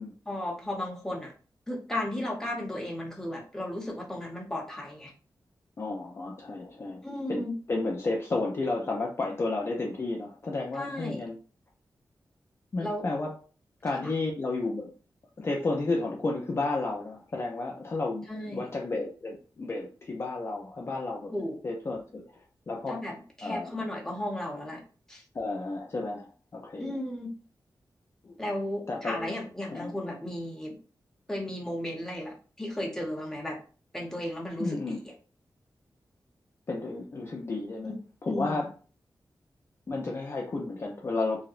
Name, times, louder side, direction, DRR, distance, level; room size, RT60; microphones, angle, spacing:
voice 1, 0.3-1.3 1.7-5.1 7.0-7.5 10.7-11.2 12.8-13.0 14.0-14.1 18.3-18.7 21.3-21.6 22.9-24.8 25.1-25.2 26.8-27.3 28.4-30.8 31.3-33.6 33.9-35.0 37.8-38.0 38.3-38.6, left 1 dB, 5° left, -2 dB, 0.7 m, -34 dB
voice 2, 5.8-7.0 7.3-11.4 12.7-13.3 13.8-14.9 15.4-21.3 21.6-22.2 22.7-23.0 23.4-23.7 25.3-26.9 28.2-28.4 28.9-29.3 29.7-29.9 34.6-35.0 36.7-37.9 38.2-38.7 39.9-41.4, left 3 dB, 35° left, -1 dB, 0.4 m, -32 dB
2.7 x 2.0 x 2.4 m, 0.37 s
wide cardioid pair, 150°, 8 cm